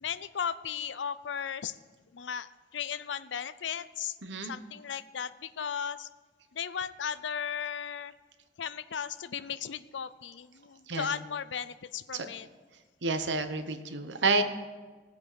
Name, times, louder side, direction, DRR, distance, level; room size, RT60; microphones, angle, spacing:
voice 1, 0.0-1.8 2.1-4.2 4.4-6.1 6.5-8.1 8.6-12.5, left 7 dB, 85° left, 15 dB, 0.5 m, -36 dB
voice 2, 4.2-4.5 10.9-11.1 12.1-12.3 13.0-14.4, right 3 dB, 80° right, 9 dB, 1.0 m, -29 dB
19.0 x 8.2 x 5.0 m, 1.4 s
head